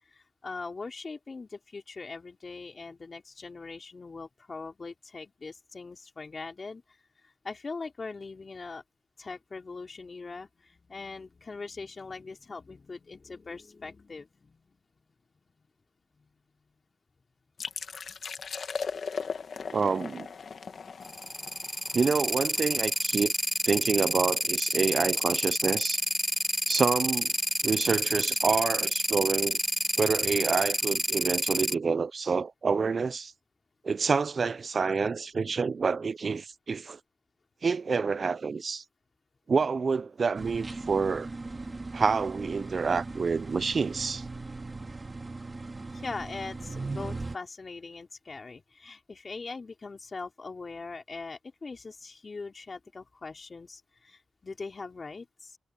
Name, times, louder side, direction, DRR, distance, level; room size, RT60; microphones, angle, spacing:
voice 1, 0.1-7.0 7.2-8.8 9.2-14.8 16.1-16.3 45.9-55.6, left 4 dB, 45° left, 3.6 m, -41 dB
sound 1, 17.6-23.1, left 5 dB, 65° left, 1.5 m, -38 dB
voice 2, 19.7-20.3 21.9-23.3 23.7-26.0 26.7-27.3 27.6-29.6 30.0-33.3 33.8-37.0 37.6-38.8 39.5-41.3 41.9-44.2, right 5 dB, 55° right, 0.4 m, -27 dB
sound 2, 21.0-31.7, equal, 5° left, 1.5 m, -28 dB
sound 3, 40.3-47.4, right 3 dB, 30° right, 2.4 m, -39 dB
cardioid pair, 70°, 0 cm